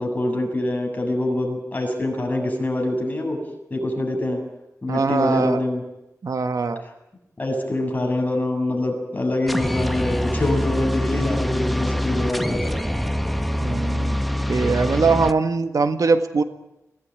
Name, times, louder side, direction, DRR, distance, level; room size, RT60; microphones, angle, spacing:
voice 1, 0.0-3.5 3.7-4.4 4.8-5.8 7.4-12.8, left 1 dB, 30° left, 2 dB, 7.5 m, -24 dB
voice 2, 4.9-5.6 6.2-6.8 13.6-14.2 14.5-16.4, right 4 dB, 75° right, 9 dB, 1.7 m, -21 dB
sound 1, 9.5-15.3, left 1 dB, ahead, 1.2 m, -24 dB
22.5 x 18.5 x 9.6 m, 0.91 s
wide cardioid pair, 90°, 6 cm